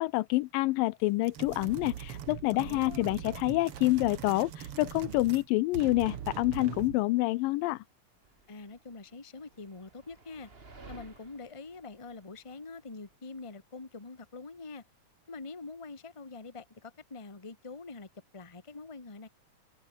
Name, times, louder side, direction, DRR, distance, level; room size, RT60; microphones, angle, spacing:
voice 1, 0.0-7.8, left 20 dB, 80° left, 2.2 m, -27 dB
sound 1, 1.2-5.5 5.7-7.0, right 10 dB, 55° right, 1.8 m, -41 dB
voice 2, 2.5-3.3 8.5-10.5 10.9-14.8 15.3-19.3, left 3 dB, 15° left, 1.4 m, -45 dB
sound 2, 8.2-13.1, right 3 dB, 20° right, 1.7 m, -54 dB
omnidirectional pair, 4.1 m